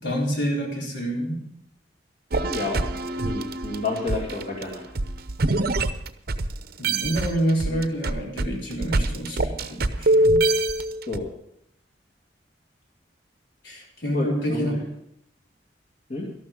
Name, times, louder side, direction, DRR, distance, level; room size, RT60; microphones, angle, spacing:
voice 1, 0.0-1.4 6.8-10.4 13.6-14.7, right 1 dB, 75° left, -2 dB, 4.1 m, -27 dB
sound 1, 2.3-6.5 6.8-11.2, right 1 dB, 55° right, 0.8 m, -24 dB
voice 2, 2.4-2.8 3.2-4.9 11.1-11.3 14.1-14.8 16.1-16.2, left 3 dB, 45° left, -2 dB, 2.3 m, -30 dB
13.0 x 12.0 x 5.1 m, 0.73 s
head